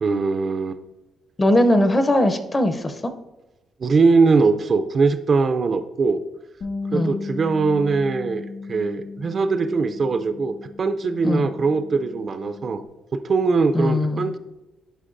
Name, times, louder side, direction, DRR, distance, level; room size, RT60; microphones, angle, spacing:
voice 1, 0.0-0.8 3.8-6.2 6.9-12.8 13.1-14.4, right 4 dB, 45° right, 10 dB, 0.4 m, -21 dB
voice 2, 1.4-3.1 6.9-7.2 11.2-11.5 13.7-14.3, left 1 dB, 25° left, 8 dB, 0.6 m, -20 dB
Bass guitar, 6.6-12.9, left 3 dB, 60° left, 1.8 m, -36 dB
9.9 x 5.2 x 2.5 m, 1.0 s
cardioid pair, 90°, 0 cm